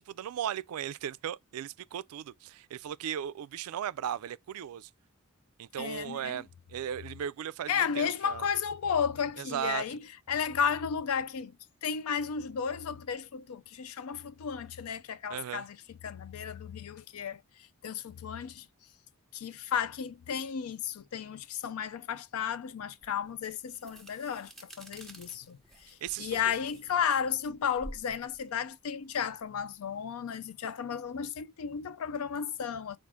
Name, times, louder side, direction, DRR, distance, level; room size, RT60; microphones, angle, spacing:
voice 1, 0.0-4.9 5.6-8.4 9.4-9.8 15.3-15.7 26.0-26.4, right 9 dB, 80° right, 0.3 m, -37 dB
voice 2, 5.8-6.4 7.7-11.6 11.8-18.7 19.3-33.0, left 7 dB, 75° left, 0.4 m, -33 dB
sound 1, 23.0-29.8, right 1 dB, ahead, 0.7 m, -51 dB
4.8 x 2.5 x 3.6 m
head